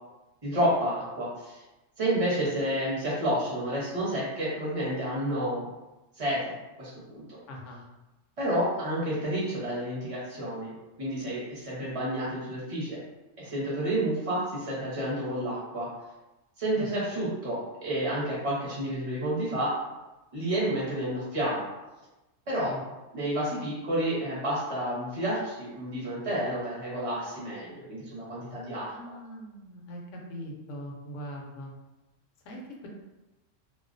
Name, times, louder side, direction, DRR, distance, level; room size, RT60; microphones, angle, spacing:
voice 1, 0.4-1.6 2.0-5.7 6.2-7.4 8.4-10.7 11.0-13.0 13.4-15.9 16.6-19.8 20.3-21.7 22.5-22.7 23.1-28.9, right 1 dB, 30° right, -7 dB, 0.8 m, -30 dB
voice 2, 7.5-7.8 16.7-16.9 22.7-22.8 28.9-31.7 32.4-32.9, equal, 75° left, -1 dB, 0.9 m, -41 dB
2.3 x 2.1 x 2.5 m, 1.0 s
omnidirectional pair, 1.3 m